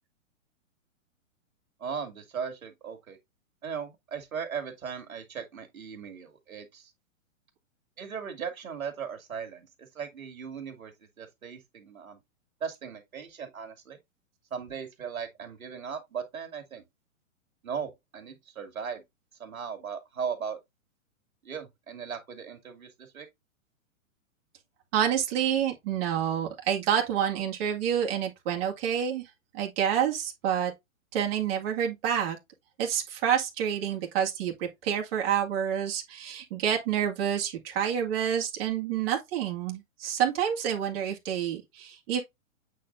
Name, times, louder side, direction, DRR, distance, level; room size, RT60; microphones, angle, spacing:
voice 1, 1.8-3.2 3.6-6.9 8.0-9.7 10.0-10.9 11.2-12.2 12.6-14.0 14.5-16.8 17.6-19.0 19.4-20.6 21.4-22.9 23.1-23.3, right 6 dB, 85° right, 2.5 m, -37 dB
voice 2, 24.9-30.7 31.1-32.4 32.8-42.2, right 9 dB, 45° right, 2.2 m, -28 dB
8.4 x 4.4 x 2.6 m
hypercardioid pair, 130°, 41 cm